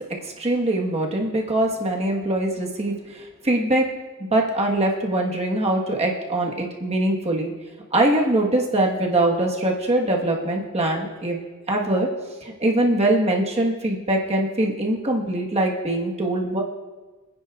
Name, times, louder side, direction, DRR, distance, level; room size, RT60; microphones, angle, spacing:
voice 1, 0.2-3.9 4.3-7.5 7.9-11.4 11.7-12.1 12.4-16.6, right 1 dB, 30° right, -1 dB, 1.5 m, -22 dB
26.5 x 9.6 x 2.5 m, 1.3 s
head